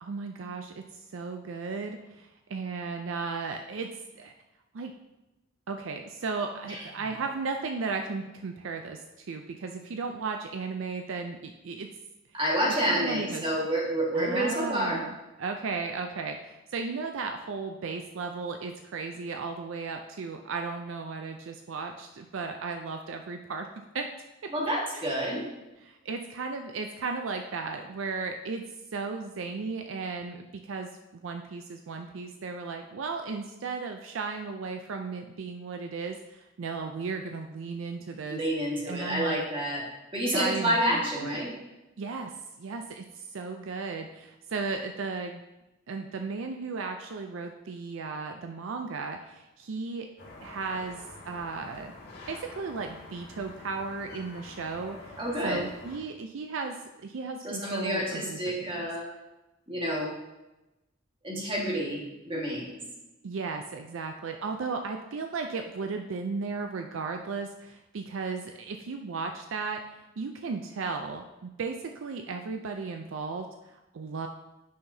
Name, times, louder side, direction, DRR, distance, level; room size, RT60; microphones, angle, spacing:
voice 1, 0.0-3.9 4.2-4.3 4.7-4.9 5.7-11.9 12.9-13.4 14.1-23.7 23.9-24.0 24.9-25.0 25.8-28.6 28.9-38.4 38.9-39.4 40.3-41.4 42.0-42.3 42.6-45.4 45.9-50.1 50.4-51.9 52.3-58.9 63.2-69.8 70.2-71.8 72.0-74.3, right 4 dB, 70° right, 4 dB, 0.4 m, -35 dB
voice 2, 12.3-15.0 24.5-25.4 38.3-39.8 40.1-41.5 55.2-55.6 57.4-59.1 59.7-60.2 61.2-62.8, equal, 25° right, -4 dB, 1.7 m, -29 dB
sound 1, 50.2-56.0, left 2 dB, 50° left, 1.7 m, -47 dB
9.4 x 5.7 x 2.7 m, 1.0 s
head